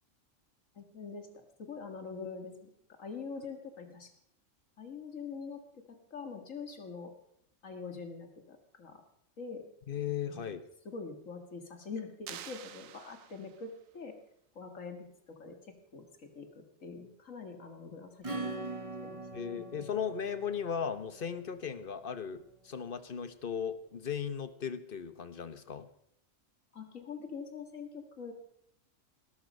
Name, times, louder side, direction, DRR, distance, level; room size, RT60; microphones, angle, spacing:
voice 1, 0.8-4.1 4.8-7.1 7.6-9.0 9.4-9.7 10.2-10.5 10.9-14.2 14.6-18.5 19.0-19.2 19.6-19.7 26.7-28.3, left 5 dB, 80° left, 5 dB, 2.2 m, -44 dB
voice 2, 9.9-10.7 19.3-25.9, left 7 dB, 45° left, 12 dB, 1.1 m, -37 dB
sound 1, 12.3-13.8, right 10 dB, 85° right, 1.1 m, -48 dB
Acoustic guitar / Strum, 18.2-22.5, right 2 dB, 25° right, 1.4 m, -43 dB
19.0 x 13.0 x 5.4 m, 0.74 s
omnidirectional pair, 1.3 m